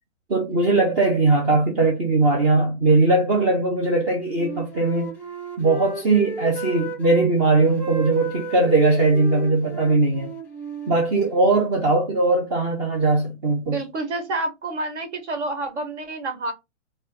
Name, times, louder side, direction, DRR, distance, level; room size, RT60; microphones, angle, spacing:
voice 1, 0.3-5.1 5.6-10.3 10.9-13.8, right 3 dB, 15° right, 0.4 m, -20 dB
Wind instrument woodwind instrument, 4.3-7.3 7.7-11.6, right 3 dB, 5° left, 0.8 m, -34 dB
voice 2, 13.6-16.5, right 2 dB, 65° right, 1.6 m, -28 dB
4.1 x 2.1 x 3.9 m
hypercardioid pair, 125°, 37 cm